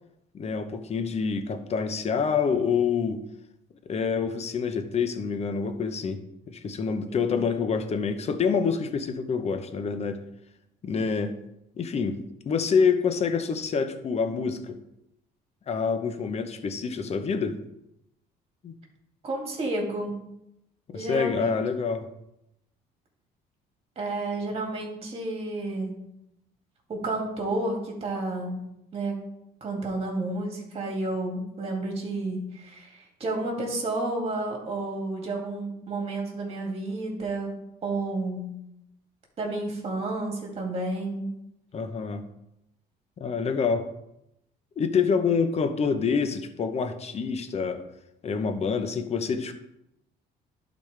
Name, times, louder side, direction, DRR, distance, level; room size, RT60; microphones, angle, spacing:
voice 1, 0.3-3.2 3.9-10.2 10.8-11.3 11.8-12.2 12.5-14.8 15.7-17.6 18.6-18.7 20.9-22.1 41.7-42.2 43.2-43.9 44.8-47.8 48.2-49.5, left 5 dB, 40° left, 8 dB, 0.9 m, -27 dB
voice 2, 19.2-20.1 20.9-21.6 24.0-26.0 26.9-28.6 28.9-29.1 29.6-37.5 37.8-38.5 39.4-41.3, right 2 dB, 35° right, -1 dB, 2.4 m, -31 dB
11.5 x 4.2 x 3.3 m, 0.84 s
cardioid pair, 110°, 17 cm